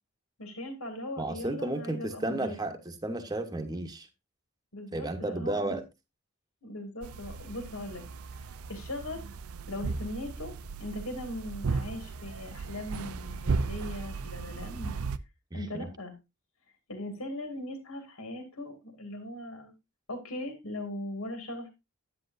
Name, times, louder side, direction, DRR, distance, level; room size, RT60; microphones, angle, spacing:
voice 1, 0.4-2.6 4.7-5.8 6.6-8.0 8.3-9.3 9.7-14.9 15.5-16.2 16.9-19.7 20.1-21.7, left 1 dB, 80° left, 5 dB, 2.2 m, -39 dB
voice 2, 1.2-4.1 4.9-5.8 15.5-15.9, right 2 dB, 20° right, 6 dB, 1.0 m, -33 dB
sound 1, 7.0-15.2, right 4 dB, 85° right, 0.6 m, -36 dB
10.0 x 9.0 x 2.6 m, 0.24 s
head